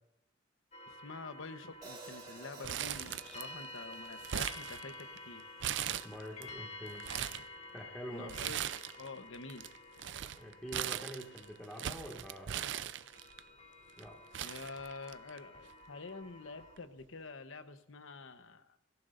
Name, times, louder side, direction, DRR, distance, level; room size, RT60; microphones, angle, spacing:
sound 1, 0.7-16.8, left 2 dB, 35° left, 1.7 m, -52 dB
voice 1, 0.9-5.4 8.1-8.6 9.0-9.7 14.4-18.8, left 3 dB, 80° left, 10 dB, 1.0 m, -47 dB
Hi-hat, 1.8-6.0, right 3 dB, 20° right, 2.0 m, -54 dB
Crumpling crinkling, 2.6-3.6 3.9-5.2 5.6-6.4 6.9-7.5 8.3-9.1 9.3-13.4 14.0-14.1 14.3-15.4 15.7-15.8 16.8-17.0, right 10 dB, 65° right, 0.5 m, -39 dB
voice 2, 6.0-7.0 7.3-7.4 7.7-8.3 10.4-12.9 14.0-14.2, equal, 5° left, 0 dB, 1.9 m, -46 dB
24.0 x 15.0 x 2.6 m, 0.82 s
head